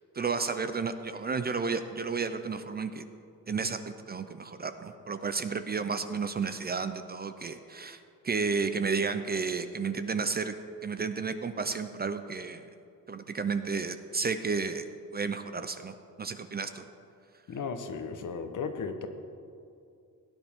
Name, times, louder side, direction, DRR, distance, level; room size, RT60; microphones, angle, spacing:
voice 1, 0.1-3.0 3.5-10.5 10.8-12.7 13.1-14.9 15.1-16.8, right 5 dB, 30° right, 9 dB, 0.5 m, -32 dB
voice 2, 17.5-19.1, left 5 dB, 60° left, 7 dB, 1.0 m, -35 dB
16.5 x 9.7 x 3.6 m, 2.5 s
cardioid pair, 120°, 35 cm